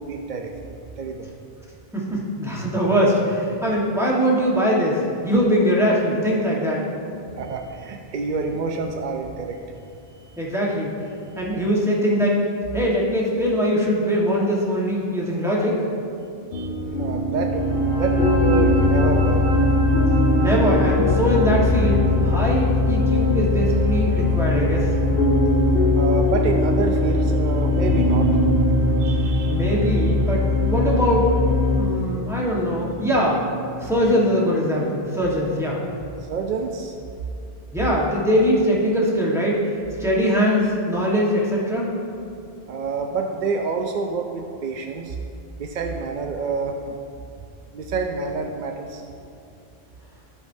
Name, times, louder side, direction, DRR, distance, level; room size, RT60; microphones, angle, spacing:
voice 1, 0.0-1.3 7.4-9.6 10.1-10.4 11.3-11.4 16.5-16.7 17.0-17.7 18.0-19.5 25.9-28.4 29.0-29.6 36.2-36.9 42.7-45.2 45.6-47.0 47.7-49.0, right 4 dB, 60° right, 3 dB, 0.6 m, -28 dB
voice 2, 1.9-6.8 10.4-11.0 11.3-12.4 12.7-15.8 20.4-24.9 29.5-31.3 31.8-33.4 33.8-35.8 37.7-39.6 40.0-41.9, equal, 5° right, -5 dB, 1.3 m, -21 dB
sound 1, 16.5-34.3, right 1 dB, 80° left, 0.9 m, -25 dB
sound 2, 17.4-31.8, left 3 dB, 45° right, 2.2 m, -21 dB
14.5 x 5.2 x 2.7 m, 2.5 s
omnidirectional pair, 1.0 m